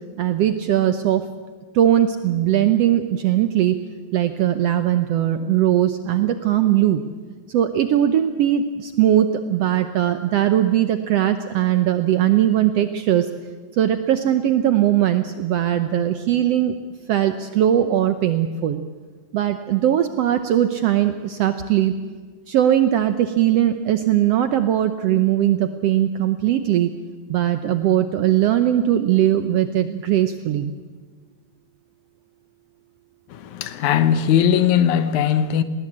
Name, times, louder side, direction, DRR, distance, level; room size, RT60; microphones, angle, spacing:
voice 1, 0.2-1.2 1.7-3.8 4.1-7.0 7.5-13.3 13.7-16.7 17.1-18.8 19.3-21.9 22.5-26.9 27.3-30.7, right 11 dB, 75° right, 1.5 m, -19 dB
voice 2, 33.3-35.6, left 9 dB, 75° left, 2.3 m, -19 dB
19.5 x 19.0 x 8.5 m
omnidirectional pair, 3.6 m